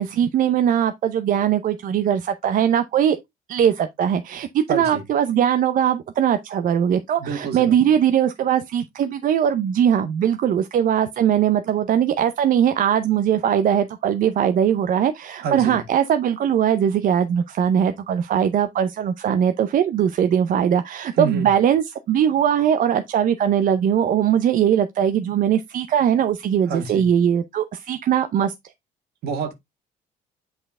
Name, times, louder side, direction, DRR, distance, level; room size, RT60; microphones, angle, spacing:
voice 1, 0.0-3.2 3.5-28.5, right 9 dB, 55° right, 0.6 m, -20 dB
voice 2, 4.7-5.0 7.2-7.8 15.4-15.8 21.1-21.5 26.7-27.1 29.2-29.5, right 5 dB, 70° right, 1.7 m, -28 dB
7.9 x 4.4 x 3.6 m
cardioid pair, 110°, 17 cm